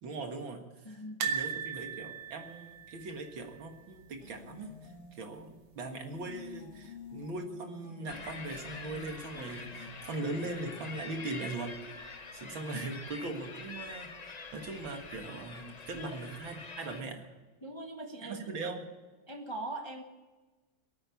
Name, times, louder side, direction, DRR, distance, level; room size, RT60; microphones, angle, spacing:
voice 1, 0.0-12.0 12.3-17.3 18.2-18.9, right 2 dB, 70° right, 4 dB, 2.5 m, -40 dB
voice 2, 0.8-1.2 15.9-16.2 17.6-18.6 19.3-20.0, right 2 dB, 20° left, 3 dB, 0.8 m, -41 dB
sound 1, 1.2-4.3 4.5-4.7 5.0-5.1 6.3-6.8 7.4-7.5, right 7 dB, 90° right, 2.2 m, -38 dB
sound 2, 4.2-5.4 5.8-11.0, left 6 dB, 90° left, 3.8 m, -51 dB
sound 3, 8.1-17.0, left 4 dB, 50° left, 0.4 m, -45 dB
19.0 x 8.9 x 8.5 m, 1.2 s
omnidirectional pair, 2.2 m